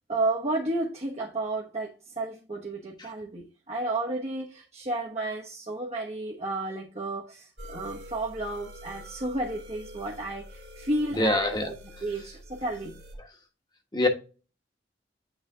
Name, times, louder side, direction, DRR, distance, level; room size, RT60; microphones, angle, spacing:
voice 1, 0.1-11.7 12.0-13.0, right 2 dB, 40° right, 1.0 m, -32 dB
sound 1, 7.6-13.1, equal, 85° right, 1.8 m, -46 dB
voice 2, 11.2-11.7 13.9-14.1, left 2 dB, 25° left, 1.2 m, -24 dB
8.9 x 3.3 x 3.6 m
head